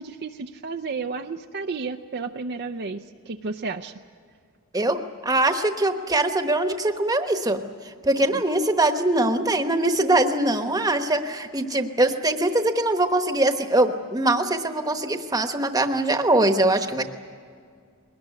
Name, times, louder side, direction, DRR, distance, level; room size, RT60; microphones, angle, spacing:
voice 1, 0.0-3.9 8.3-8.4, right 4 dB, 50° right, 7 dB, 0.6 m, -32 dB
voice 2, 4.7-17.0, right 2 dB, 15° right, 7 dB, 1.1 m, -22 dB
21.5 x 19.5 x 9.7 m, 2.1 s
head